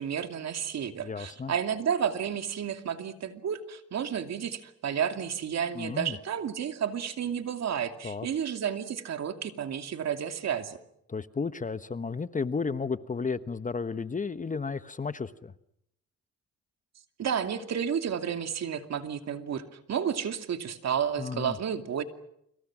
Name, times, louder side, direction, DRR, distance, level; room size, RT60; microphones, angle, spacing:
voice 1, 0.0-10.8 17.2-19.6 19.9-22.0, right 8 dB, 60° right, 7 dB, 2.7 m, -31 dB
voice 2, 1.0-1.5 5.7-6.2 8.0-8.3 11.1-15.5 21.2-21.6, left 4 dB, 25° left, 13 dB, 1.1 m, -33 dB
29.5 x 26.5 x 6.2 m, 0.77 s
cardioid pair, 90°, 30 cm